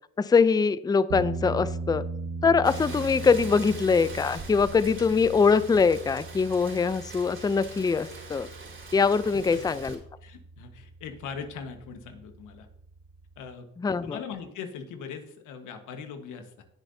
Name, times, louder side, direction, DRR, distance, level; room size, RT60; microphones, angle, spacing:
voice 1, 0.2-2.0 2.4-8.5 8.9-10.0 13.8-14.2, left 5 dB, 15° left, 16 dB, 0.4 m, -23 dB
sound 1, 1.1-13.4, right 3 dB, 80° right, 1.3 m, -39 dB
Rain, 2.6-10.0, right 4 dB, 40° right, 3.4 m, -43 dB
voice 2, 9.5-9.9 10.2-12.7 13.4-13.7 14.0-16.6, left 6 dB, 90° left, 6 dB, 1.4 m, -40 dB
19.0 x 6.6 x 2.7 m, 0.72 s
cardioid pair, 90°, 30 cm